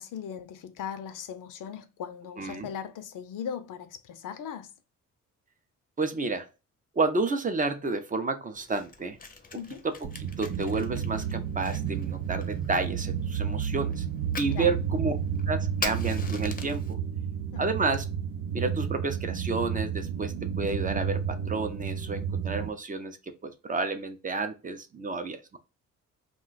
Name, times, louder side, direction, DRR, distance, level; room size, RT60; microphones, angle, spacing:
voice 1, 0.0-4.8 9.5-9.9 14.5-14.7 17.5-17.7, left 8 dB, 70° left, 0.5 m, -38 dB
voice 2, 2.4-2.7 6.0-6.5 7.0-9.2 9.8-9.9 10.2-14.0 14.4-15.1 15.5-17.0 17.6-18.0 18.5-25.6, right 3 dB, 25° right, 0.4 m, -30 dB
Fire, 8.5-16.9, left 4 dB, 25° left, 0.5 m, -43 dB
sound 1, 10.0-22.7, right 8 dB, 80° right, 0.5 m, -31 dB
2.4 x 2.2 x 3.8 m
cardioid pair, 85°, 33 cm